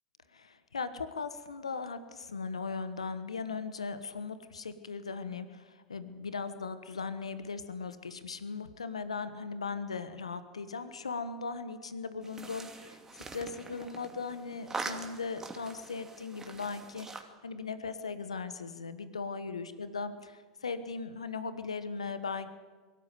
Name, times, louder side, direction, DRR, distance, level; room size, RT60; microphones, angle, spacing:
voice 1, 0.3-22.5, left 4 dB, 85° left, 12 dB, 1.3 m, -38 dB
sound 1, 12.2-17.2, right 3 dB, 15° right, 2.6 m, -43 dB
23.0 x 13.5 x 9.4 m, 1.4 s
hypercardioid pair, 90°, 3 cm